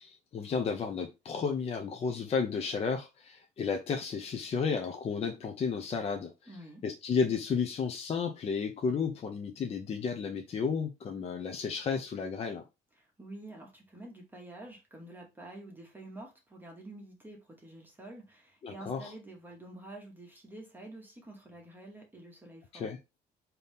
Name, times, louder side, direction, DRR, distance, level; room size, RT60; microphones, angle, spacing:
voice 1, 0.0-6.5 6.8-12.6 18.6-19.1 22.7-23.0, left 5 dB, 35° left, 0.5 m, -32 dB
voice 2, 6.5-6.8 13.0-22.9, right 1 dB, 10° right, 1.1 m, -48 dB
4.0 x 2.8 x 3.4 m
cardioid pair, 110°, 17 cm